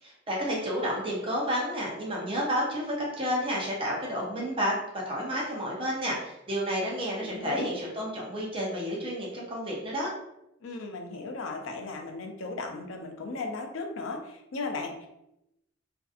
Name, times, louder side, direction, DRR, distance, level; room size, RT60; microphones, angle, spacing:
voice 1, 0.0-4.7 5.1-10.1, equal, 25° right, -4 dB, 0.6 m, -30 dB
voice 2, 7.2-7.7 10.6-15.1, left 3 dB, 80° left, 4 dB, 0.4 m, -36 dB
2.6 x 2.4 x 2.4 m, 0.86 s
head